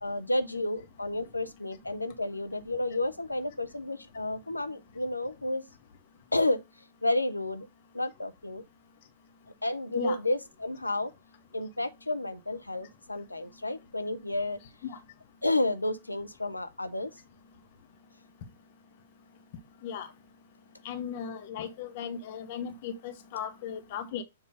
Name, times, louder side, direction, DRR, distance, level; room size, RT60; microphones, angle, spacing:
voice 1, 0.0-5.6 6.3-6.6 7.0-7.7 7.9-8.6 9.6-11.1 11.5-14.6 15.4-17.1, left 2 dB, 85° left, 0.7 m, -31 dB
voice 2, 20.8-24.2, left 7 dB, 40° left, 1.0 m, -37 dB
7.1 x 2.7 x 4.9 m
figure-of-eight pair, 110°, 0 cm